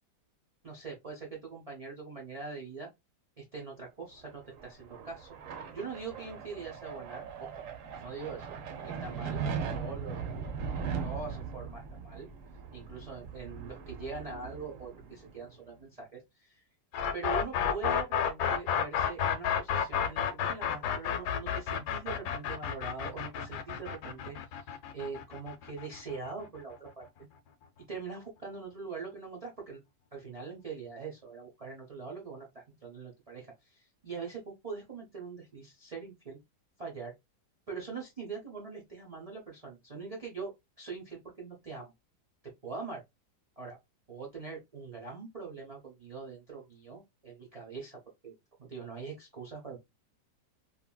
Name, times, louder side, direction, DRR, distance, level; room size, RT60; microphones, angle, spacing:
voice 1, 0.6-2.9 3.4-5.3 5.7-7.5 8.0-8.5 8.8-9.4 9.7-10.2 11.0-12.3 12.7-16.7 17.1-27.0 27.9-29.8 30.1-36.4 36.8-37.1 37.7-41.9 42.4-43.0 43.6-43.8 44.1-48.3 48.6-49.8, right 5 dB, 80° right, -2 dB, 0.3 m, -43 dB
sound 1, 4.3-15.6, right 6 dB, 60° right, 0.9 m, -39 dB
sound 2, 16.9-26.8, left 8 dB, 75° left, 1.0 m, -31 dB
3.0 x 2.6 x 2.2 m, 0.20 s
omnidirectional pair, 1.8 m